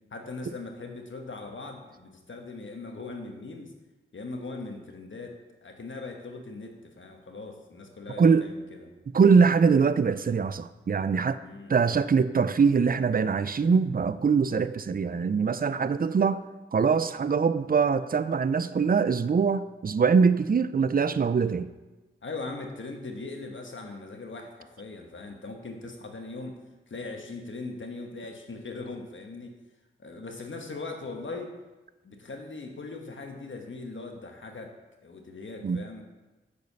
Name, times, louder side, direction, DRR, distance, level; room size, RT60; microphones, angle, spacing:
voice 1, 0.1-3.7 4.1-8.9 11.4-11.9 22.2-26.6 26.9-29.6 30.0-31.5 32.0-34.7 35.0-36.0, left 3 dB, 65° left, 3 dB, 1.3 m, -40 dB
voice 2, 9.1-11.4 11.7-16.4 16.7-21.7 35.6-35.8, right 5 dB, 45° right, 14 dB, 0.5 m, -23 dB
6.6 x 5.1 x 6.8 m, 1.1 s
cardioid pair, 45°, 21 cm